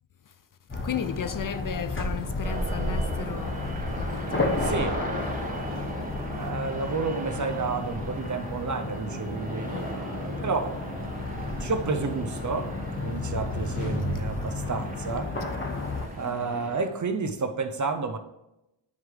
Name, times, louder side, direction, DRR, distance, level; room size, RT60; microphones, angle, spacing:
sound 1, 0.7-16.1, left 2 dB, 25° left, 1.2 m, -32 dB
voice 1, 0.8-5.4 9.7-9.9 14.1-14.4 16.3-16.4, left 8 dB, 45° left, 0.5 m, -36 dB
sound 2, 2.4-16.9, right 2 dB, 20° right, 1.3 m, -38 dB
voice 2, 4.6-5.0 6.4-10.8 11.3-15.3 16.2-18.2, right 4 dB, 40° right, 0.7 m, -31 dB
sound 3, 12.6-15.8, equal, 85° left, 2.0 m, -36 dB
9.6 x 4.6 x 3.3 m
cardioid pair, 60°, 45 cm